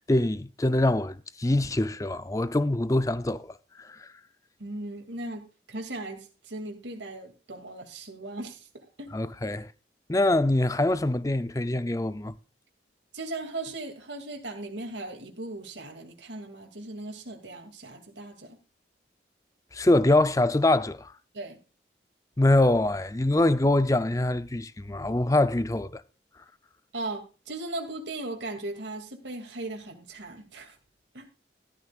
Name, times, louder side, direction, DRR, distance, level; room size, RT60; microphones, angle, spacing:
voice 1, 0.1-4.1 9.1-9.7 10.1-12.3 19.7-21.1 22.4-26.0, left 2 dB, 20° left, 0.5 m, -24 dB
voice 2, 4.6-9.1 13.1-18.6 21.3-21.6 26.9-30.8 31.1-31.3, right 2 dB, 90° right, 2.6 m, -38 dB
14.0 x 12.0 x 2.5 m
head